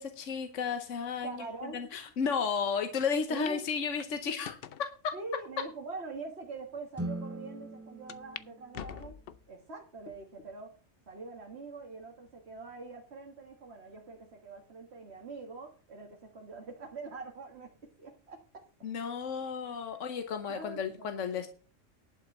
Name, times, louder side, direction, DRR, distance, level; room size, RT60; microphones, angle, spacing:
voice 1, 0.0-4.6 5.0-5.1 18.8-21.5, left 6 dB, 75° left, 7 dB, 1.3 m, -33 dB
voice 2, 1.2-1.8 3.3-3.7 5.1-9.2 9.5-10.7 11.1-18.6 20.5-21.5, right 3 dB, 55° right, 1 dB, 1.9 m, -44 dB
sound 1, 3.0-3.1 3.5-3.6 4.0-4.9 5.5-5.6 6.4-6.5 6.7-6.8 8.1-8.5 8.7-9.5 10.1-10.5 11.0-11.1 12.3-12.7, left 9 dB, 55° left, 0.8 m, -45 dB
sound 2, 6.9-9.4, right 1 dB, 15° right, 0.7 m, -41 dB
11.0 x 5.6 x 7.2 m, 0.39 s
omnidirectional pair, 1.3 m